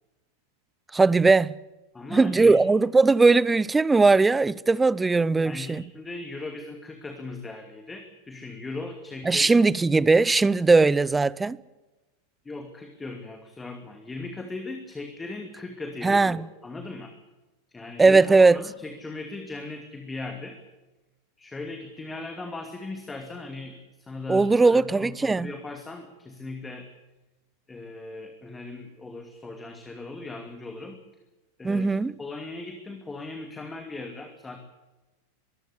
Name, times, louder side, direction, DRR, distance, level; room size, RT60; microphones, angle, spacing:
voice 1, 0.9-1.5 2.1-5.8 9.2-11.6 16.0-16.4 18.0-18.6 24.3-25.5 31.6-32.1, right 3 dB, 10° right, 0.6 m, -19 dB
voice 2, 1.9-2.6 5.4-9.7 12.4-17.1 17.7-18.2 18.5-20.6 21.4-26.9 27.7-31.0 31.6-31.9 32.2-34.6, left 3 dB, 10° left, 2.5 m, -38 dB
23.0 x 15.5 x 8.4 m
figure-of-eight pair, 90°, 0 cm